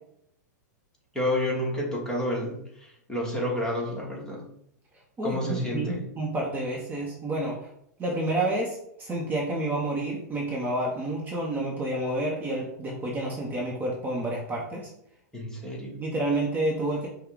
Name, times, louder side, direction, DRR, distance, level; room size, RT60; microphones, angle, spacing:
voice 1, 1.1-4.4 5.2-6.0 15.3-16.0, left 1 dB, 5° left, -3 dB, 1.4 m, -30 dB
voice 2, 5.2-7.7 8.0-14.9 16.0-17.1, right 1 dB, 20° right, -2 dB, 1.0 m, -29 dB
5.5 x 2.3 x 3.9 m, 0.73 s
hypercardioid pair, 115°, 10 cm